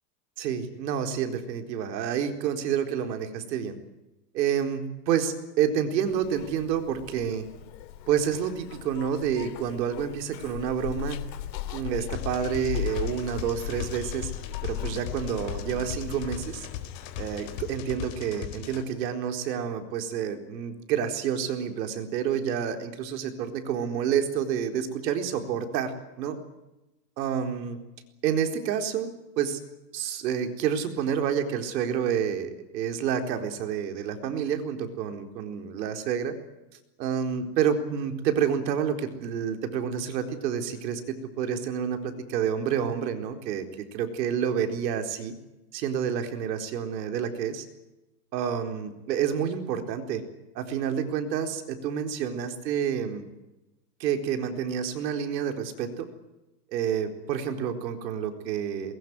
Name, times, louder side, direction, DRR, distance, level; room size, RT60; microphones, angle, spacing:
voice 1, 0.4-3.8 4.3-7.4 8.1-11.2 11.7-14.3 14.6-16.7 17.2-25.9 26.2-26.4 27.2-27.8 28.2-29.6 29.9-36.4 37.0-43.7 43.9-45.3 45.7-47.7 48.3-50.2 50.5-53.3 54.0-56.1 56.7-59.0, right 8 dB, 80° right, 6 dB, 4.3 m, -29 dB
Zipper (clothing), 6.1-17.8, left 11 dB, 80° left, 2.9 m, -38 dB
sound 1, 12.1-18.8, left 11 dB, 55° left, 4.5 m, -39 dB
22.0 x 21.5 x 9.7 m, 0.98 s
supercardioid pair, 155°, 50 cm